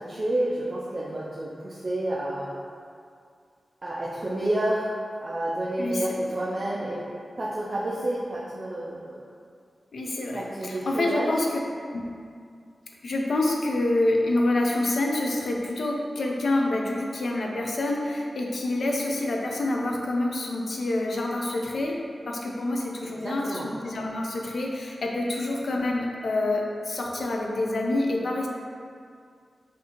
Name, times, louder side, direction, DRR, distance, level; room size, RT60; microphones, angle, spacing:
voice 1, 0.0-2.5 3.8-4.9 5.2-7.0 7.4-9.2 10.3-11.4 23.0-23.7, right 1 dB, 35° right, -6 dB, 0.5 m, -29 dB
voice 2, 5.8-6.2 9.9-11.6 11.9-12.1 13.0-22.0 22.3-28.5, left 2 dB, 70° left, 0 dB, 0.5 m, -27 dB
5.7 x 2.7 x 2.9 m, 2.2 s
wide cardioid pair, 130°, 0 cm